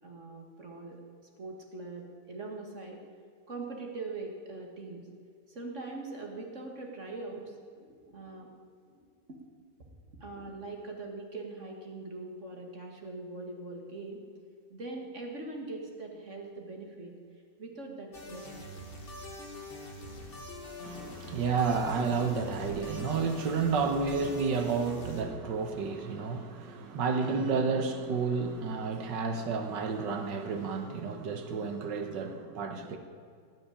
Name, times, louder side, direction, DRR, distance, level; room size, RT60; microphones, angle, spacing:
voice 1, 0.0-3.0 3.5-5.1 5.5-8.5 8.9-9.0 9.3-9.4 10.2-14.2 14.7-17.1 17.6-18.7, right 3 dB, 40° right, 1 dB, 2.1 m, -42 dB
sound 1, 18.1-25.2, left 1 dB, 30° left, 1.9 m, -44 dB
voice 2, 20.8-33.0, right 5 dB, 80° right, 6 dB, 1.8 m, -31 dB
18.0 x 6.4 x 10.0 m, 2.2 s
omnidirectional pair, 1.9 m